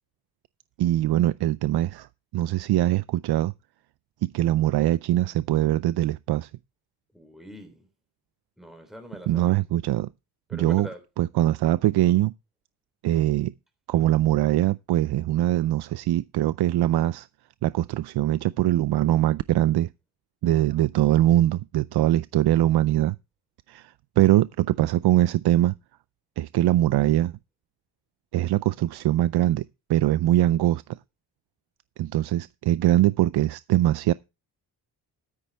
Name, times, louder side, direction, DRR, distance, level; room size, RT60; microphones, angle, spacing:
voice 1, 0.8-2.1 2.3-3.5 4.2-6.5 9.3-10.1 10.5-10.9 11.2-12.3 13.0-13.5 13.9-17.3 17.6-19.9 20.4-23.2 23.7-25.7 26.4-27.3 28.3-30.8 32.0-34.1, right 14 dB, 80° right, 0.5 m, -22 dB
voice 2, 7.1-7.9 8.6-9.6 10.5-11.0, equal, ahead, 3.3 m, -42 dB
13.0 x 9.8 x 3.4 m
cardioid pair, 120°, 39 cm